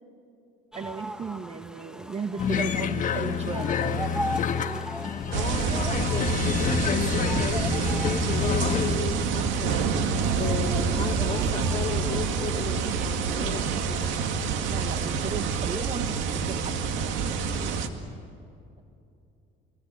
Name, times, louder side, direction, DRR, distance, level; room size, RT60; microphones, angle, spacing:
sound 1, 0.7-14.0, equal, 5° right, 1.2 m, -39 dB
voice 1, 0.7-4.2 14.7-17.7, right 5 dB, 35° right, 8 dB, 1.3 m, -36 dB
sound 2, 2.4-9.0, left 7 dB, 40° left, 1.4 m, -28 dB
voice 2, 5.3-9.9 10.3-14.1, left 5 dB, 25° left, -3 dB, 3.7 m, -34 dB
sound 3, 5.3-17.9, right 5 dB, 85° right, 2.1 m, -27 dB
27.5 x 23.0 x 9.0 m, 2.6 s
cardioid pair, 110°, 19 cm